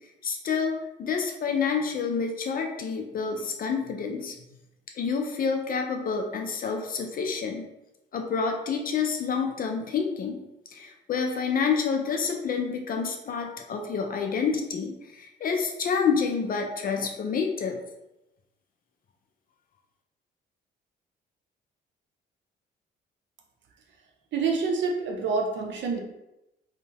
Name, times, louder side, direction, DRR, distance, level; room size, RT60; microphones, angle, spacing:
voice 1, 0.2-4.4 5.0-7.7 8.1-10.4 10.7-17.8, left 5 dB, 45° left, 3 dB, 0.4 m, -28 dB
voice 2, 24.3-26.0, right 4 dB, 65° right, 1 dB, 0.6 m, -27 dB
2.6 x 2.1 x 2.8 m, 0.92 s
cardioid pair, 90°, 20 cm